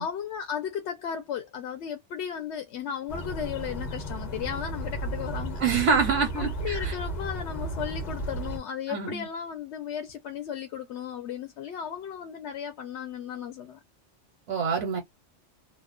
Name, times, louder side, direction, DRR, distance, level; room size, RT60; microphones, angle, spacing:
voice 1, 0.0-5.6 6.4-13.8, left 8 dB, 70° left, 0.8 m, -35 dB
sound 1, 3.1-8.6, right 1 dB, 40° left, 0.8 m, -34 dB
voice 2, 5.6-6.9 8.9-9.3 14.5-15.0, right 5 dB, 85° right, 1.1 m, -26 dB
2.6 x 2.1 x 2.4 m
omnidirectional pair, 1.2 m